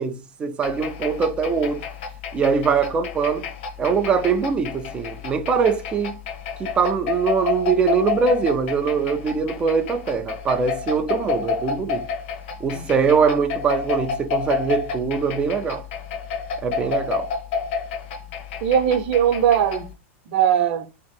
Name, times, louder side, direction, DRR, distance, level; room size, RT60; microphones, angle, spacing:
voice 1, 0.0-1.9 2.3-3.5 3.8-6.2 6.6-12.1 12.6-15.9 16.6-17.3, right 5 dB, 15° right, 0.4 m, -22 dB
sound 1, 0.6-19.9, left 5 dB, 50° left, 1.1 m, -30 dB
voice 2, 18.6-19.9 20.3-20.9, right 9 dB, 50° right, 0.8 m, -19 dB
3.5 x 3.0 x 4.3 m
supercardioid pair, 175°, 7 cm